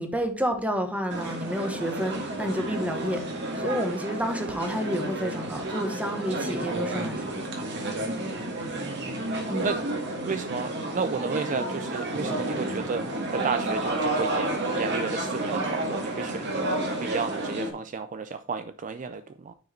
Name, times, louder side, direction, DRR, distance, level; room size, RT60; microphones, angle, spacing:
voice 1, 0.0-3.2 3.6-7.3 9.5-9.7, equal, 5° right, 1.2 m, -30 dB
sound 1, 1.1-17.7, right 1 dB, 55° right, 1.9 m, -31 dB
voice 2, 8.6-9.2 9.6-9.8 10.2-13.0 13.3-16.7 17.0-19.5, right 5 dB, 35° right, 0.4 m, -32 dB
9.4 x 4.8 x 4.4 m
head